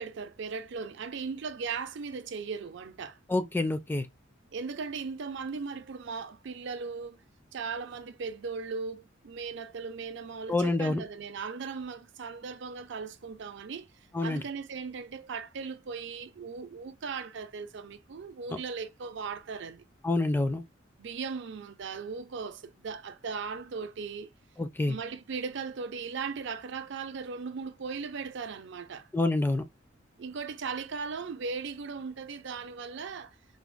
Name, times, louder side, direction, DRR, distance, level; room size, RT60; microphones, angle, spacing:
voice 1, 0.0-3.2 4.5-7.2 7.5-13.9 14.2-19.8 21.0-24.3 24.9-29.1 30.2-33.4, right 5 dB, 60° right, 0.5 m, -38 dB
voice 2, 3.3-4.1 10.5-11.0 14.1-14.4 20.0-20.6 24.6-25.0 29.1-29.6, left 2 dB, 10° left, 0.4 m, -27 dB
3.9 x 2.0 x 2.3 m
head